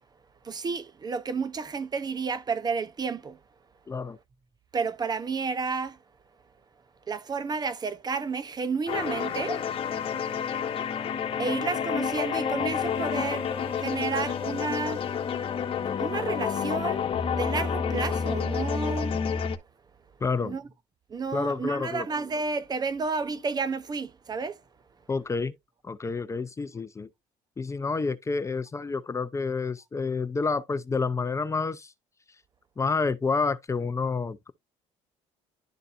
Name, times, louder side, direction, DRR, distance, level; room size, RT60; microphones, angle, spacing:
voice 1, 0.4-3.4 4.7-6.0 7.1-9.6 11.4-15.0 16.0-17.0 17.3-19.2 20.4-20.6 21.1-24.6, right 4 dB, 30° right, 0.7 m, -31 dB
voice 2, 3.9-4.2 20.2-20.6 21.3-22.1 25.1-25.6 25.8-27.1 27.6-31.9 32.8-34.5, left 4 dB, 20° left, 0.5 m, -29 dB
sound 1, 8.9-19.6, left 7 dB, 45° left, 1.2 m, -29 dB
11.5 x 3.9 x 2.5 m
cardioid pair, 100°, 14 cm